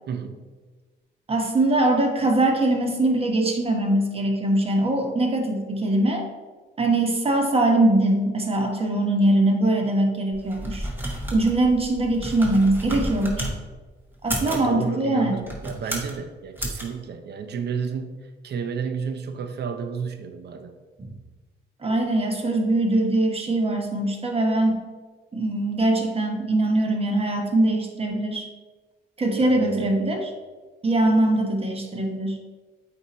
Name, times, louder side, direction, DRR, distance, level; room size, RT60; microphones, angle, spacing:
voice 1, 0.1-0.4 14.4-20.7 29.4-30.1, right 6 dB, 55° right, 7 dB, 0.7 m, -32 dB
voice 2, 1.3-6.2 6.8-10.9 11.3-13.5 14.2-15.3 21.0-21.1 21.8-24.8 25.3-28.5 29.2-30.3 30.8-32.4, right 1 dB, 30° right, 2 dB, 1.1 m, -22 dB
sound 1, 10.3-13.5 14.1-14.7 15.4-16.2 16.6-16.8, right 1 dB, 10° right, 1.4 m, -31 dB
8.3 x 2.8 x 4.2 m, 1.3 s
cardioid pair, 90°, 20 cm